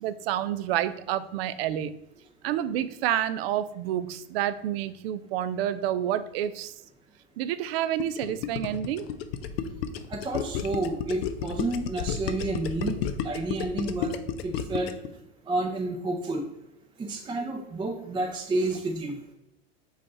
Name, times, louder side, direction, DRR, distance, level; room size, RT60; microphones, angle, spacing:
voice 1, 0.0-1.9 2.4-6.7 7.4-9.1, right 11 dB, 70° right, 14 dB, 0.4 m, -29 dB
Gurgling, 8.0-15.1, left 9 dB, 70° left, 0.5 m, -32 dB
voice 2, 10.1-14.1 14.4-14.9 15.5-16.4 17.0-19.2, right 2 dB, 15° right, 1 dB, 0.6 m, -30 dB
5.1 x 2.5 x 4.2 m, 0.86 s
hypercardioid pair, 110°, 31 cm